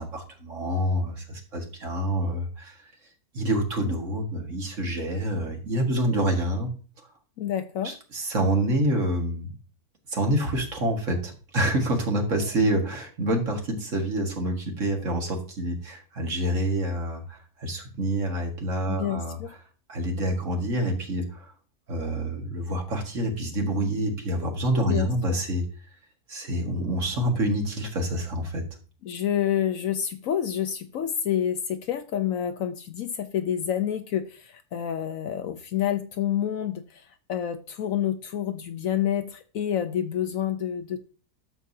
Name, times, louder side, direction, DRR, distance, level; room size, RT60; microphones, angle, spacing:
voice 1, 0.0-2.8 3.3-6.7 7.8-9.5 10.1-19.4 19.9-21.5 21.9-25.6 26.3-28.6, right 1 dB, 50° right, 2.0 m, -27 dB
voice 2, 7.4-8.0 18.9-19.5 24.8-25.4 29.0-37.0 37.3-41.0, left 10 dB, 65° left, 0.9 m, -28 dB
12.0 x 7.1 x 2.7 m
omnidirectional pair, 1.7 m